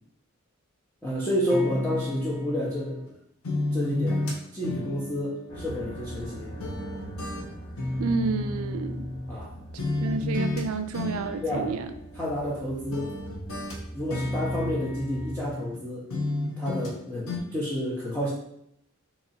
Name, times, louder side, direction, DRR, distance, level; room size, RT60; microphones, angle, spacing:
voice 1, 1.0-3.0 3.7-4.3 4.5-6.6 9.3-9.5 11.4-11.7 12.1-13.1 13.9-16.1 16.6-18.3, equal, 10° left, -8 dB, 0.6 m, -30 dB
sound 1, 1.5-3.1 3.4-6.3 6.6-9.5 9.8-10.6 10.9-12.6 12.9-15.8 16.1-17.0 17.3-17.4, left 2 dB, 80° left, 0.8 m, -32 dB
sound 2, 5.5-15.5, right 1 dB, 25° left, 1.2 m, -42 dB
voice 2, 8.0-9.1 10.0-11.9, right 4 dB, 80° right, 9 dB, 0.4 m, -30 dB
2.9 x 2.8 x 4.1 m, 0.75 s
head